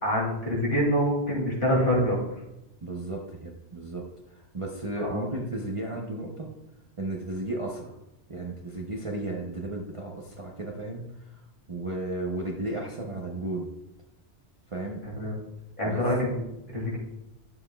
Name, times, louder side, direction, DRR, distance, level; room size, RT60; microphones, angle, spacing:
voice 1, 0.0-2.2 5.0-5.3 15.2-15.4 15.8-16.4 16.7-17.0, equal, 50° left, -4 dB, 2.8 m, -25 dB
voice 2, 2.8-6.5 7.0-7.9 8.3-11.4 11.7-13.7 14.7-15.0 15.8-16.0, right 2 dB, 30° right, -1 dB, 0.8 m, -34 dB
11.0 x 7.4 x 2.3 m, 0.90 s
omnidirectional pair, 1.1 m